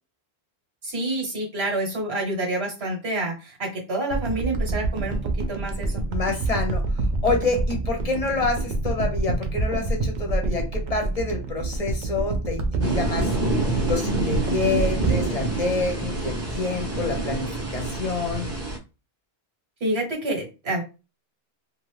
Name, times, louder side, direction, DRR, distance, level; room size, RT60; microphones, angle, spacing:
voice 1, 0.8-6.0 19.8-20.8, right 2 dB, 75° right, -1 dB, 1.4 m, -28 dB
sound 1, 4.1-16.3 16.9-17.0, right 2 dB, 55° right, 0.6 m, -27 dB
voice 2, 6.1-6.8 7.2-13.3 13.8-18.5, left 3 dB, 40° left, 3 dB, 0.7 m, -27 dB
sound 2, 12.8-18.8, right 2 dB, 15° right, 0.7 m, -27 dB
2.6 x 2.5 x 3.2 m, 0.30 s
omnidirectional pair, 1.1 m